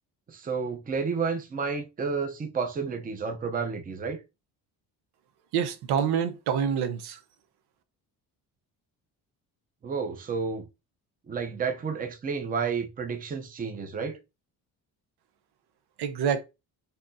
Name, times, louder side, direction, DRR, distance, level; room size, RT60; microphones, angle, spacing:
voice 1, 0.3-4.2 9.8-10.6 11.3-14.2, right 5 dB, 20° right, 0.6 m, -31 dB
voice 2, 5.5-7.2 16.0-16.4, right 7 dB, 80° right, 0.8 m, -26 dB
5.7 x 2.8 x 2.6 m
cardioid pair, 160°, 39 cm